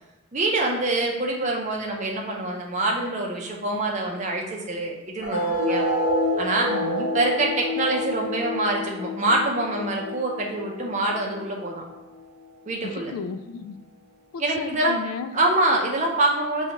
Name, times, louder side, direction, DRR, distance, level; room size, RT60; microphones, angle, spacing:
voice 1, 0.3-5.8 6.4-6.7 7.1-11.8 12.7-13.1 14.4-15.0 15.3-16.7, right 2 dB, 35° right, -1 dB, 0.6 m, -25 dB
sound 1, 5.2-12.2, left 1 dB, 60° left, 0.9 m, -28 dB
voice 2, 6.7-7.1 12.8-13.8 14.3-15.4, left 5 dB, 90° left, 13 dB, 0.3 m, -34 dB
5.2 x 2.3 x 2.9 m, 0.99 s
head